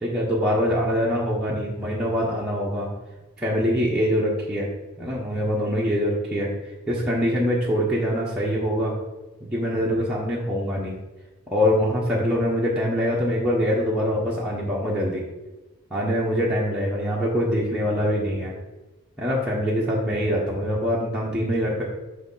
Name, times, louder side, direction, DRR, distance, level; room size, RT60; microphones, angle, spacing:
voice 1, 0.0-2.9 3.4-4.7 5.0-6.5 6.9-8.9 9.5-10.9 11.5-15.2 15.9-18.5 19.2-21.8, equal, 5° right, -7 dB, 1.0 m, -24 dB
8.1 x 3.5 x 5.6 m, 1.1 s
head